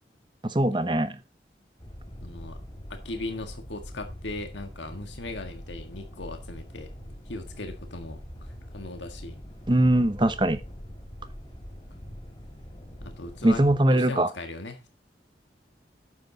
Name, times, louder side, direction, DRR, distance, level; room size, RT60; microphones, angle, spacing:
voice 1, 0.4-1.2 9.7-10.6 13.4-14.3, right 1 dB, 25° right, 0.8 m, -21 dB
sound 1, 1.8-13.8, equal, 25° left, 3.2 m, -43 dB
voice 2, 2.2-2.6 2.9-6.9 7.3-9.4 13.0-14.9, left 2 dB, 90° left, 1.7 m, -38 dB
9.3 x 7.7 x 4.0 m
head